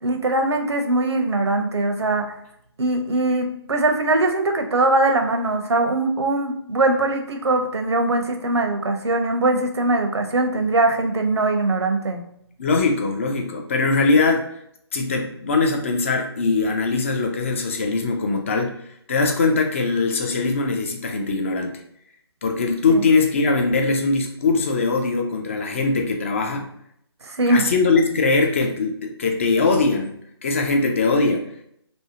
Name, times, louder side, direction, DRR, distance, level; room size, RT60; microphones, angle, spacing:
voice 1, 0.0-2.3 2.8-12.2 22.9-23.0 27.3-27.6, right 2 dB, 80° right, 4 dB, 0.6 m, -21 dB
voice 2, 12.6-14.4 14.9-18.7 19.1-21.8 22.4-26.6 27.5-30.1 30.4-31.4, left 3 dB, 30° left, 3 dB, 0.3 m, -21 dB
2.6 x 2.0 x 2.7 m, 0.72 s
figure-of-eight pair, 150°, 14 cm